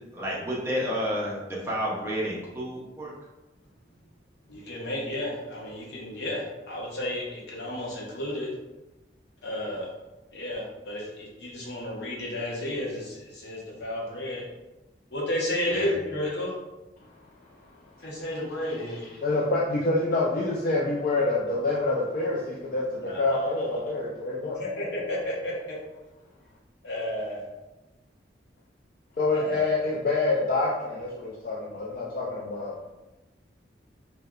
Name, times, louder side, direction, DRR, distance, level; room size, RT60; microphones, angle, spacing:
voice 1, 0.1-3.1 15.7-15.9, equal, 15° right, -6 dB, 0.5 m, -30 dB
voice 2, 4.5-8.5 9.4-9.9 10.3-14.4 15.1-16.5 18.0-19.0 23.0-23.5 24.6-25.8 26.8-27.5 29.3-29.7, left 1 dB, 70° left, -4 dB, 0.7 m, -32 dB
voice 3, 18.6-24.6 29.2-32.8, left 2 dB, 50° left, -4 dB, 0.3 m, -27 dB
2.6 x 2.1 x 2.3 m, 1.1 s
head